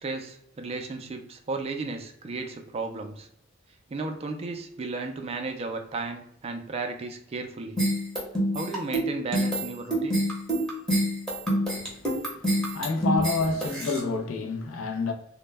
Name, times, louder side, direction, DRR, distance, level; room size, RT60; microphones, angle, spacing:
voice 1, 0.0-3.3 3.9-7.8 8.5-10.2, right 3 dB, 30° right, 0.3 m, -34 dB
sound 1, 7.8-14.0, right 1 dB, 5° left, 0.7 m, -26 dB
voice 2, 11.7-15.1, left 3 dB, 90° left, 0.4 m, -29 dB
2.1 x 2.0 x 3.2 m
head